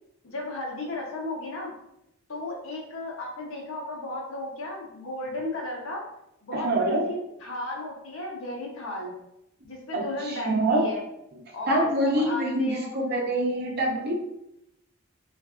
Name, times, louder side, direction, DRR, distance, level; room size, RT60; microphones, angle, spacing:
voice 1, 0.2-1.7 2.3-6.1 6.4-9.1 9.6-11.0 11.5-13.0, left 2 dB, 75° left, -2 dB, 0.8 m, -35 dB
voice 2, 6.5-7.0 9.9-10.9 11.7-14.1, right 1 dB, 50° right, -1 dB, 0.7 m, -25 dB
3.3 x 2.5 x 2.4 m, 0.83 s
head